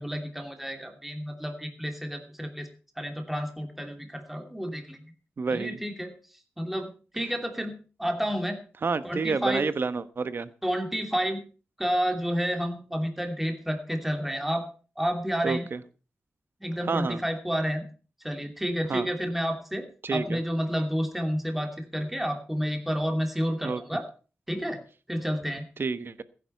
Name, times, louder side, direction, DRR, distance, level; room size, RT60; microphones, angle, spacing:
voice 1, 0.0-2.7 3.0-5.0 5.5-6.1 6.6-8.6 9.0-9.6 10.6-11.4 11.8-14.6 15.0-15.7 16.6-17.9 18.2-19.8 20.1-24.0 24.5-24.8 25.1-25.6, equal, 5° right, 5 dB, 2.8 m, -30 dB
voice 2, 5.4-5.8 8.8-10.5 15.4-15.8 16.9-17.2 18.9-19.1 20.0-20.4 23.6-23.8 25.8-26.2, right 4 dB, 55° right, 14 dB, 1.2 m, -29 dB
15.5 x 10.0 x 5.6 m, 0.37 s
wide cardioid pair, 95°, 5 cm